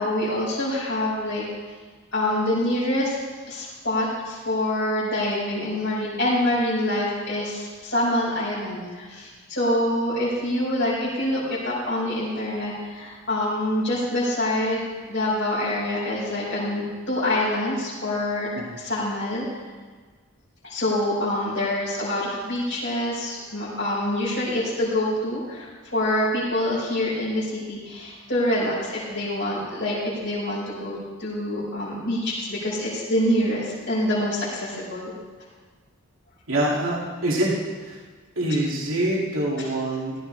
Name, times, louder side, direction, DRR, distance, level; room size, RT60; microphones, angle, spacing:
voice 1, 0.0-1.4 2.1-3.2 3.5-18.5 18.8-19.4 20.6-35.1 38.5-38.6 39.6-39.7, left 1 dB, 55° left, -11 dB, 4.9 m, -26 dB
voice 2, 36.5-37.5 37.9-38.0 38.4-40.1, right 1 dB, 75° right, -4 dB, 2.3 m, -25 dB
16.5 x 14.5 x 3.3 m, 1.4 s
head